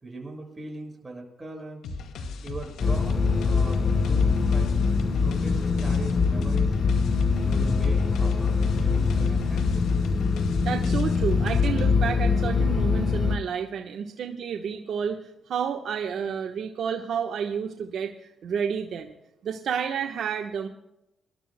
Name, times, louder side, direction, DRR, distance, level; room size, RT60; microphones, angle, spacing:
voice 1, 0.0-1.8 2.4-3.8 4.1-4.7 5.2-6.7 7.4-9.8, right 2 dB, 15° right, 0 dB, 6.5 m, -40 dB
sound 1, 1.8-11.9, left 3 dB, 80° left, 2.1 m, -37 dB
sound 2, 2.8-13.4, left 4 dB, 40° left, 0.9 m, -23 dB
voice 2, 10.6-19.1 19.4-20.7, right 7 dB, 65° right, 3 dB, 1.1 m, -30 dB
26.5 x 12.0 x 2.2 m, 0.85 s
cardioid pair, 90°, 0 cm